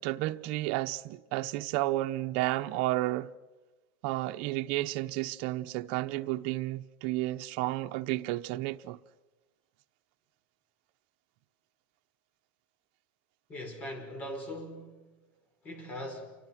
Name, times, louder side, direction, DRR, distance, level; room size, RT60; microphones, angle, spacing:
voice 1, 0.0-3.3 4.0-9.0, right 17 dB, 60° right, 1.0 m, -32 dB
voice 2, 13.5-15.1 15.6-16.4, equal, 25° left, 5.3 m, -40 dB
30.0 x 24.5 x 6.1 m
supercardioid pair, 150°, 6 cm